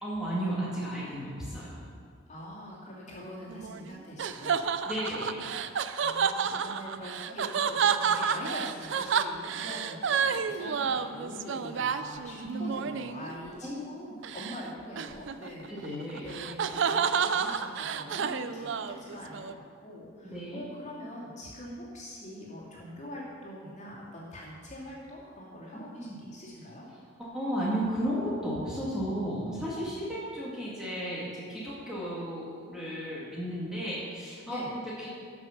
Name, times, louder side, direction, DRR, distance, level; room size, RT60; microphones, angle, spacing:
voice 1, 0.0-1.9 4.8-5.5 12.5-12.7 13.6-13.8 15.7-16.2 20.2-20.6 27.2-34.6 34.9-35.1, equal, 5° right, -8 dB, 2.0 m, -34 dB
voice 2, 2.3-4.7 6.0-26.8 34.4-34.8, equal, 35° left, -6 dB, 2.6 m, -43 dB
sound 1, 3.5-13.3 14.2-14.6 15.0-19.5, right 7 dB, 60° right, 0.4 m, -30 dB
13.0 x 6.1 x 5.8 m, 2.1 s
head